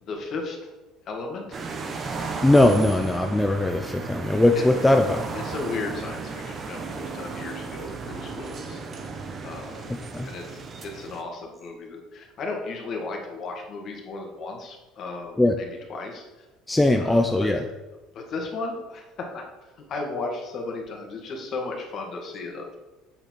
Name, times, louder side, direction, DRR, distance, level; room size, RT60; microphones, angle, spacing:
voice 1, 0.0-0.6 1.1-1.6 4.5-4.9 5.3-8.8 9.4-16.2 17.0-17.6 18.1-19.0 19.3-19.4 19.9-22.8, left 3 dB, 40° left, 2 dB, 1.9 m, -35 dB
sound 1, 1.5-11.2, right 4 dB, 30° right, 1.1 m, -35 dB
voice 2, 2.4-5.2 10.1-10.3 15.4-15.6 16.7-17.6, left 1 dB, 5° left, 4 dB, 0.5 m, -20 dB
7.7 x 7.1 x 4.6 m, 1.1 s
cardioid pair, 140°, 0 cm